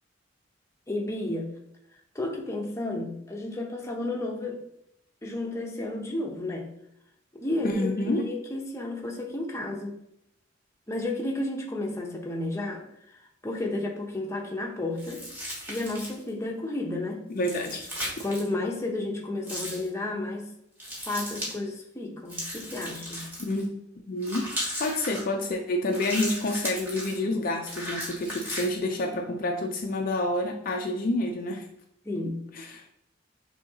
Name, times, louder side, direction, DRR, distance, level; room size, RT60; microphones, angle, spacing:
voice 1, 0.9-1.5 2.1-4.6 5.2-6.7 7.3-10.0 10.9-12.8 13.1-15.2 15.7-17.3 18.2-20.5 21.0-23.3 32.0-32.4, left 2 dB, 15° left, 0 dB, 0.7 m, -32 dB
voice 2, 7.6-8.2 17.3-17.9 23.4-23.7 24.1-24.5 24.8-31.7 32.3-32.9, left 1 dB, 45° left, 3 dB, 0.4 m, -28 dB
sound 1, 15.0-16.3 17.4-18.5 19.4-19.9 20.8-21.5 22.3-23.6 24.2-25.2 25.9-27.2 27.6-28.7, equal, 10° right, 1.5 m, -36 dB
6.5 x 2.7 x 2.8 m, 0.76 s
head